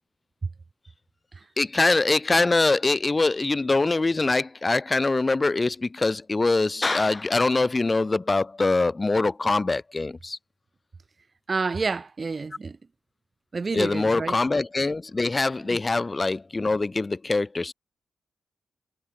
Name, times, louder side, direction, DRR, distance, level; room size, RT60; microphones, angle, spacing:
voice 1, 1.6-10.4 13.7-17.7, left 3 dB, 35° left, 1.7 m, -23 dB
voice 2, 11.5-12.8 13.5-14.4, right 4 dB, 45° right, 1.6 m, -29 dB
supercardioid pair, 45°, 0 cm